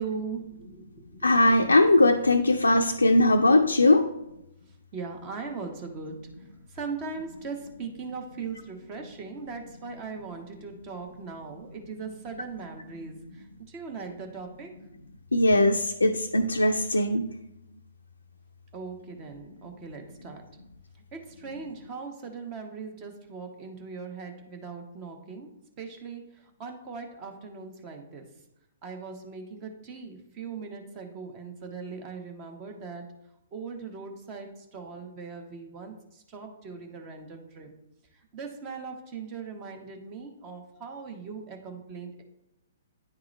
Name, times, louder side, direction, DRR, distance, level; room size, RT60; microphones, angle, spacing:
voice 1, 0.0-1.3 4.9-14.7 18.7-20.4 21.1-28.3 28.8-33.1 33.5-37.7 38.1-42.2, right 5 dB, 30° right, 4 dB, 1.1 m, -39 dB
voice 2, 1.2-4.1 15.3-17.3, left 2 dB, 85° left, 4 dB, 0.4 m, -20 dB
9.8 x 3.6 x 3.1 m, 0.88 s
figure-of-eight pair, 120°, 0 cm